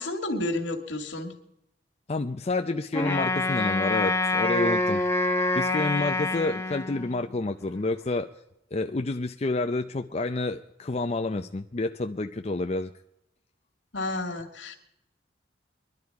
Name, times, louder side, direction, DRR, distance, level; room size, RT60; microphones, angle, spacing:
voice 1, 0.0-1.3 13.9-14.8, left 2 dB, 75° left, 2 dB, 2.3 m, -31 dB
voice 2, 2.1-5.0 5.6-8.3 8.7-12.9, left 2 dB, 35° left, 6 dB, 0.5 m, -29 dB
Wind instrument woodwind instrument, 2.9-7.3, left 2 dB, 15° left, 1.1 m, -26 dB
22.0 x 11.5 x 4.8 m, 0.82 s
head